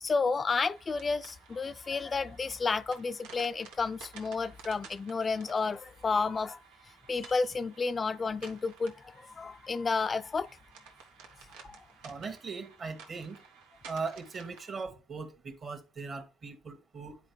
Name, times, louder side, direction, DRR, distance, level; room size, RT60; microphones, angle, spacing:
voice 1, 0.0-6.6 7.1-10.5 11.6-11.8, left 4 dB, 30° left, 0.4 m, -31 dB
sound 1, 0.7-14.8, right 5 dB, 85° right, 1.3 m, -54 dB
voice 2, 12.0-13.4 13.9-17.2, right 4 dB, 40° right, 1.6 m, -39 dB
10.0 x 4.4 x 3.3 m
supercardioid pair, 90°, 0 cm